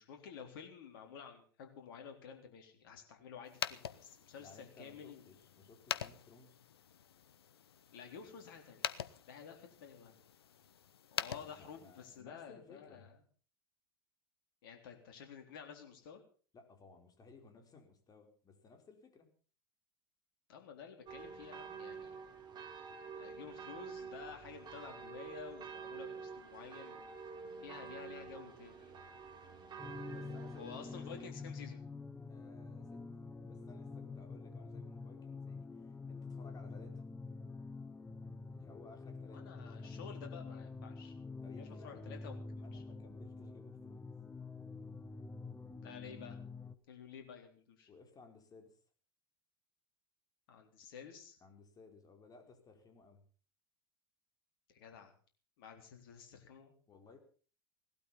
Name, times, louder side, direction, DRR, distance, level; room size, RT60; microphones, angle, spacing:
voice 1, 0.0-5.2 7.9-8.9 9.3-10.1 11.1-13.2 14.6-16.2 20.5-22.2 23.2-27.1 27.6-28.9 30.6-31.8 39.3-41.1 41.6-42.8 45.8-46.4 46.9-47.9 50.5-51.4 54.7-55.1 55.6-56.7, left 7 dB, 65° left, 4 dB, 3.8 m, -52 dB
sound 1, 3.4-12.2, left 8 dB, 85° left, 0.8 m, -45 dB
voice 2, 4.4-6.6 11.3-13.1 16.5-19.3 30.1-31.3 32.3-37.0 38.5-40.1 41.4-42.2 42.5-44.1 47.9-48.8 51.4-53.3 56.9-57.2, left 4 dB, 30° left, 5 dB, 4.7 m, -59 dB
sound 2, 21.1-31.3, right 5 dB, 35° right, 3.8 m, -48 dB
sound 3, 29.8-46.7, left 4 dB, 15° left, 1.3 m, -47 dB
18.0 x 12.5 x 5.7 m, 0.40 s
hypercardioid pair, 85°, 13 cm